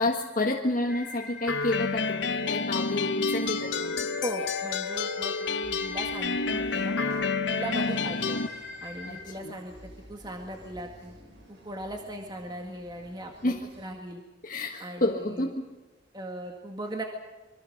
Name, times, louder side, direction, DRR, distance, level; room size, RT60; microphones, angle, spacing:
voice 1, 0.0-4.2 9.1-9.5 13.4-13.7 14.4-15.6, left 2 dB, 45° left, 1 dB, 1.5 m, -30 dB
sound 1, 0.9-9.2, left 2 dB, 5° right, 6.9 m, -42 dB
sound 2, 1.5-8.5, left 4 dB, 80° left, 1.0 m, -29 dB
voice 2, 4.2-7.0 7.5-8.4 8.8-9.7 10.1-11.2 11.5-14.2 14.8-15.5 16.1-17.0, right 1 dB, 25° right, 3 dB, 1.9 m, -38 dB
sound 3, 5.6-13.9, equal, 75° right, 6.9 m, -52 dB
26.5 x 23.5 x 6.6 m, 1.2 s
head